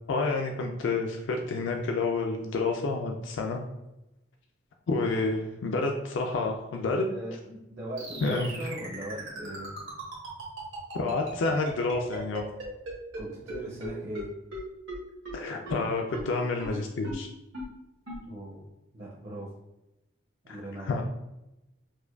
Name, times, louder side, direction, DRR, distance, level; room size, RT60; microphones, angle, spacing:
voice 1, 0.1-3.6 4.9-7.1 8.2-8.8 10.9-12.5 15.3-17.3 20.5-21.0, left 3 dB, 65° left, 2 dB, 0.3 m, -29 dB
voice 2, 7.1-9.7 13.2-14.3 18.2-18.6 18.9-19.5 20.4-20.9, right 1 dB, 45° right, -6 dB, 0.6 m, -39 dB
sound 1, 8.0-13.2 13.5-13.6 13.8-13.9 14.1-14.2 14.5-14.6 14.9-15.0 15.3-15.4 15.7-15.8 16.1-16.2 16.6-16.7 17.0-17.1 17.5-17.6 18.1-18.2, right 2 dB, 75° right, 1.2 m, -38 dB
4.7 x 2.2 x 2.3 m, 0.94 s
head